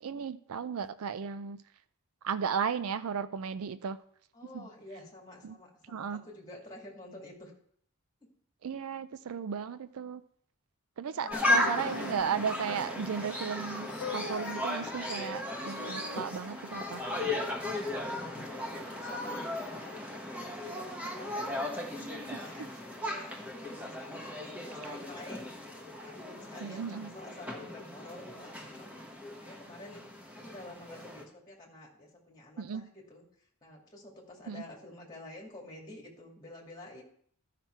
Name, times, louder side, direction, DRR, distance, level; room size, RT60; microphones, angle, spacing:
voice 1, 0.0-1.6 2.2-4.0 4.5-4.7 5.4-5.6 5.9-6.2 8.6-10.2 11.0-17.0 22.3-22.4 26.6-27.1 32.6-32.8 34.5-34.6, right 7 dB, 70° right, 12 dB, 0.4 m, -35 dB
voice 2, 4.3-7.5 11.0-11.6 18.3-21.6 21.9-25.5 25.8-28.9 29.4-30.0 30.3-37.0, left 1 dB, 20° left, -1 dB, 2.2 m, -50 dB
sound 1, 11.2-12.2 13.9-14.6 15.6-16.3 18.4-18.5 19.3-19.4 20.4-20.5, left 6 dB, 90° left, 0.8 m, -41 dB
sound 2, 11.3-31.2, left 1 dB, 5° right, 1.4 m, -36 dB
12.5 x 5.8 x 4.5 m, 0.62 s
head